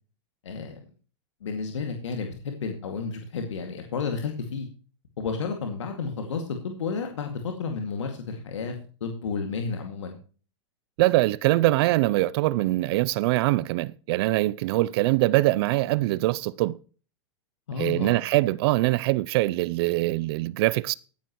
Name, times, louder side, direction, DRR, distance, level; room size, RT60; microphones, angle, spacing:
voice 1, 0.4-0.9 1.4-4.7 5.2-8.7 9.0-10.2 17.7-18.3, left 5 dB, 85° left, 2.3 m, -31 dB
voice 2, 11.0-16.8 17.8-20.9, right 18 dB, 60° right, 0.6 m, -23 dB
15.5 x 10.5 x 3.1 m
hypercardioid pair, 115°, 15 cm